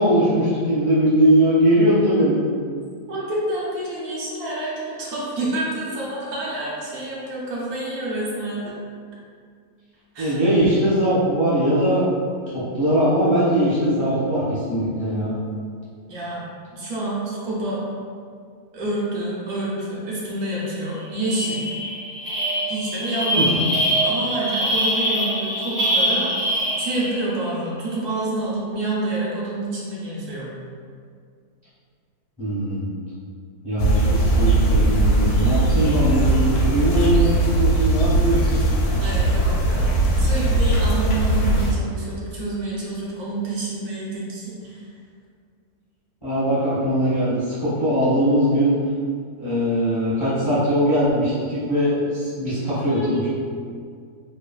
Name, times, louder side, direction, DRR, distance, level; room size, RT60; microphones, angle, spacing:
voice 1, 0.0-2.4 10.2-12.1 12.5-15.3 23.3-23.5 32.4-32.9 33.6-38.9 46.2-48.8 49.4-53.3, equal, 30° left, -12 dB, 0.6 m, -20 dB
voice 2, 3.1-8.7 10.1-10.4 16.1-16.4 16.7-17.8 18.7-21.6 22.6-23.7 24.0-26.3 26.8-30.5 39.0-44.9 52.8-53.3, right 2 dB, 75° right, -6 dB, 1.2 m, -28 dB
sound 1, 20.5-20.6 20.9-27.4, equal, 50° right, 0.8 m, -24 dB
sound 2, 33.8-41.7, right 2 dB, 80° left, 1.1 m, -19 dB
3.2 x 2.3 x 2.2 m, 2.1 s
omnidirectional pair, 1.6 m